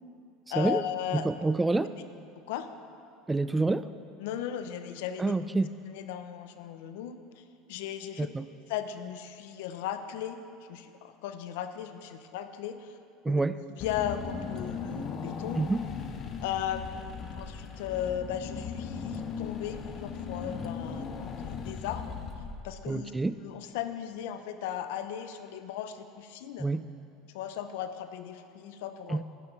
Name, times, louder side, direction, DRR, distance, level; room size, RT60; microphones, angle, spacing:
voice 1, 0.5-1.3 2.5-2.7 4.2-5.4 5.9-7.4 7.7-8.3 8.7-10.4 10.7-12.9 13.3-13.4 13.8-15.7 16.4-22.2 22.6-23.1 23.4-26.7 27.3-29.2, left 10 dB, 80° left, 9 dB, 0.6 m, -36 dB
voice 2, 1.1-1.9 3.3-3.9 5.2-5.7 8.2-8.5 13.2-13.6 15.5-15.8 22.9-23.4 26.6-26.9 29.1-29.2, right 3 dB, 10° right, 13 dB, 0.3 m, -27 dB
Car / Engine, 13.8-23.0, left 6 dB, 40° left, 0.9 m, -38 dB
12.0 x 9.3 x 4.1 m, 2.7 s
supercardioid pair, 110°, 0 cm